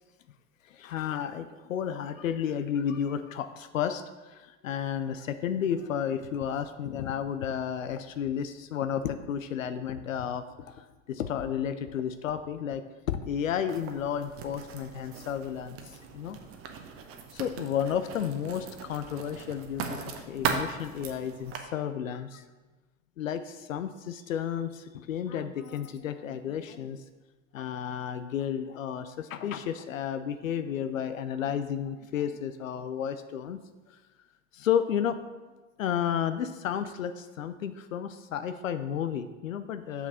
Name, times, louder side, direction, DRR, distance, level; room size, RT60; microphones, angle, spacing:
voice 1, 0.6-12.8 13.1-16.4 17.3-22.4 23.2-27.0 27.5-33.6 33.9-34.0 34.5-35.2 35.8-40.1, left 8 dB, 85° left, 11 dB, 0.5 m, -32 dB
Writing, 13.7-21.6, right 6 dB, 35° right, 0.9 m, -38 dB
6.7 x 5.9 x 4.1 m, 1.2 s
hypercardioid pair, 90°, 39 cm